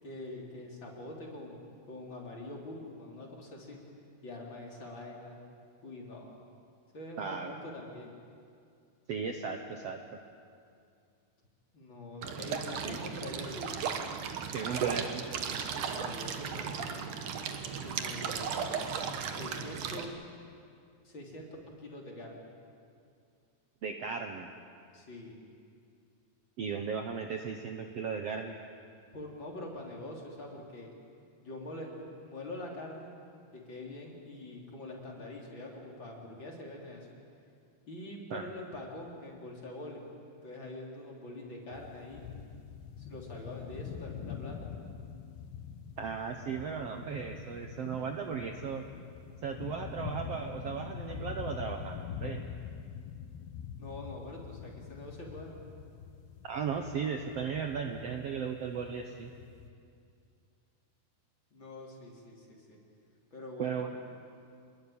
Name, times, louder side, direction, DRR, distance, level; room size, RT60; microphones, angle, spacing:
voice 1, 0.0-3.8 4.2-5.4 5.8-6.3 6.9-8.1 11.7-13.8 15.7-16.9 17.8-18.9 19.3-20.1 21.0-21.5 21.8-22.5 24.9-25.4 29.1-30.9 31.4-33.1 33.5-37.1 37.9-40.0 40.4-42.3 43.0-44.7 53.8-55.6 61.5-62.8 63.3-63.8, left 1 dB, 30° left, -1 dB, 4.1 m, -44 dB
voice 2, 7.2-7.5 9.1-10.0 12.8-13.0 14.5-15.2 23.8-24.5 26.6-28.5 38.3-38.4 46.0-48.8 49.4-52.4 56.4-59.3 63.6-63.9, right 6 dB, 80° right, 4 dB, 1.4 m, -36 dB
sound 1, 12.2-20.0, right 7 dB, 60° right, 2.5 m, -36 dB
sound 2, 41.7-59.7, left 8 dB, 80° left, 3.2 m, -44 dB
27.0 x 21.5 x 8.9 m, 2.4 s
omnidirectional pair, 4.6 m